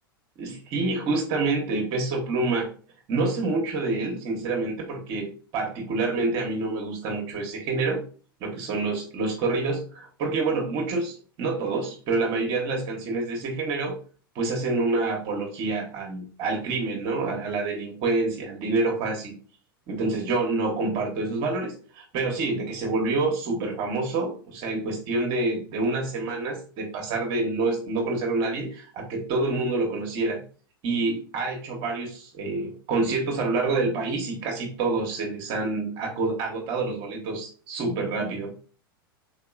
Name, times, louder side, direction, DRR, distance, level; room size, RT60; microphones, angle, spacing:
voice 1, 0.4-2.7 3.1-8.0 8.4-14.0 14.3-19.3 19.9-30.4 30.8-38.5, right 3 dB, 45° right, 1 dB, 1.0 m, -27 dB
3.7 x 2.9 x 2.4 m, 0.40 s
hypercardioid pair, 100°, 12 cm